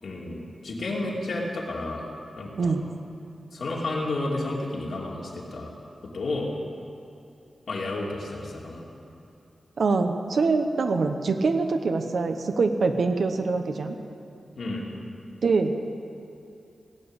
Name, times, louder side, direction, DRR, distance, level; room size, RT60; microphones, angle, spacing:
voice 1, 0.0-2.1 2.4-2.8 3.5-5.7 6.1-6.5 7.7-8.9 14.6-14.9, left 2 dB, 65° left, -3 dB, 2.7 m, -31 dB
voice 2, 9.8-14.0 15.4-15.7, right 4 dB, 65° right, 6 dB, 0.9 m, -24 dB
18.5 x 9.1 x 8.1 m, 2.7 s
wide cardioid pair, 165°, 0 cm